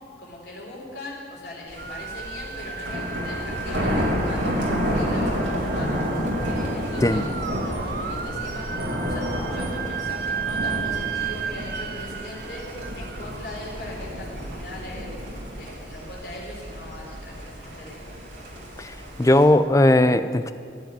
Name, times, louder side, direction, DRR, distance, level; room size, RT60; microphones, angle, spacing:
voice 1, 0.2-5.9 6.5-7.2 7.6-12.7 12.9-15.1 15.5-18.1, left 2 dB, 65° left, -3 dB, 3.7 m, -40 dB
Thunder, 1.7-19.4, equal, 90° right, 2.9 m, -30 dB
sound 1, 1.8-14.8, right 7 dB, 55° right, 0.6 m, -35 dB
voice 2, 18.8-20.5, left 1 dB, 20° left, 11 dB, 0.4 m, -18 dB
15.0 x 7.5 x 9.3 m, 2.3 s
head